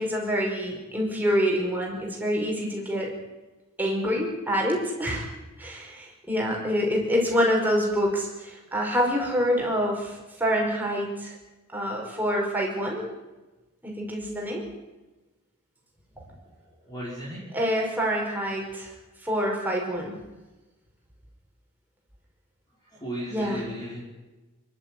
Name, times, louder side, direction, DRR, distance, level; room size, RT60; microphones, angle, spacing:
voice 1, 0.0-3.1 3.8-5.3 5.6-11.4 11.7-13.1 13.8-14.6 17.5-18.9 19.2-20.2 23.3-23.6, equal, 10° right, -2 dB, 5.3 m, -26 dB
voice 2, 16.8-17.5 22.8-24.0, equal, 20° left, -5 dB, 5.8 m, -36 dB
29.0 x 12.0 x 9.5 m, 1.1 s
head